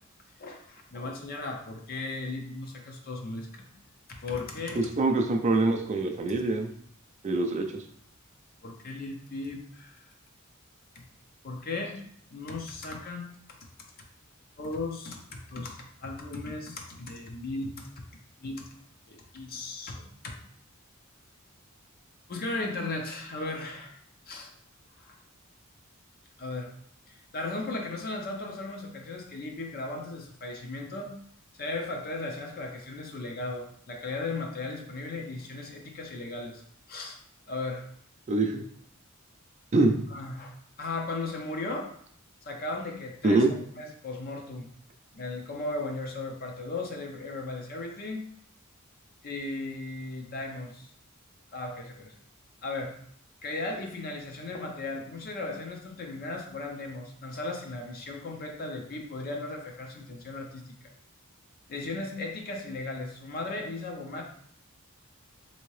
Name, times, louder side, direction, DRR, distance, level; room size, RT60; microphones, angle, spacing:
voice 1, 0.4-3.7 4.2-4.8 8.6-10.0 11.0-11.1 11.4-12.0 12.3-13.3 14.6-17.9 18.4-18.6 19.1-20.0 22.3-24.0 24.3-24.5 25.0-25.2 26.4-26.7 27.1-31.1 31.6-36.6 36.9-37.2 37.5-37.8 40.1-40.5 40.8-41.9 42.5-43.5 43.7-44.7 45.1-48.2 49.2-50.9 51.5-52.1 52.6-53.0 53.4-60.6 61.7-64.2, left 2 dB, 45° left, 2 dB, 0.6 m, -36 dB
voice 2, 4.8-6.7 7.2-7.8 38.3-38.6 39.7-39.9 43.2-43.5, right 2 dB, 35° right, 3 dB, 0.4 m, -24 dB
3.5 x 2.8 x 3.1 m, 0.63 s
head